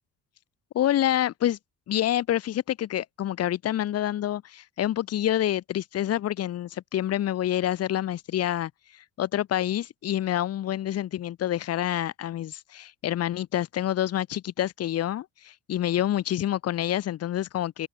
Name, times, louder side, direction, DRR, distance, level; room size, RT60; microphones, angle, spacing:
voice 1, 0.7-1.6 1.9-17.9, left 12 dB, 50° left, 0.9 m, -27 dB
cardioid pair, 125°, 32 cm